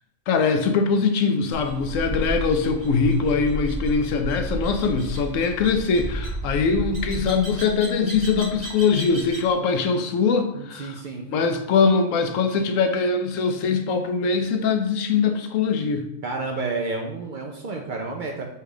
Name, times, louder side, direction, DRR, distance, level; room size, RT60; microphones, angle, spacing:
voice 1, 0.3-11.0 11.3-16.0, left 5 dB, 75° left, 6 dB, 0.9 m, -22 dB
sound 1, 1.5-9.5, right 1 dB, 35° right, 0.9 m, -33 dB
voice 2, 10.5-11.3 16.2-18.5, right 3 dB, 70° right, 1 dB, 0.4 m, -30 dB
4.5 x 2.4 x 4.8 m, 0.84 s
omnidirectional pair, 1.4 m